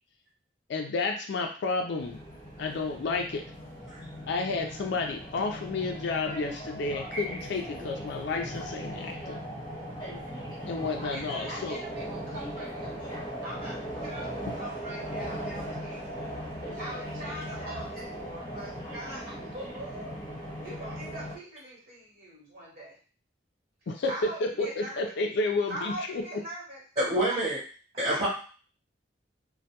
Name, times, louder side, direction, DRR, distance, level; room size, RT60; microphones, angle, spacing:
voice 1, 0.7-2.2 2.6-3.4 4.3-9.4 10.7-11.8 23.9-26.2, left 3 dB, 65° left, 3 dB, 0.4 m, -31 dB
sound 1, 2.0-21.4, equal, 25° left, 0.8 m, -38 dB
voice 2, 11.1-13.0 13.4-16.3 16.8-18.1 18.5-20.2 20.6-23.0 24.1-25.1 25.7-26.8 27.3-27.4 27.9-28.2, right 1 dB, 55° right, -4 dB, 1.1 m, -41 dB
voice 3, 27.0-27.6 28.0-28.3, right 1 dB, 35° right, -9 dB, 0.8 m, -27 dB
2.2 x 2.2 x 2.8 m, 0.39 s
head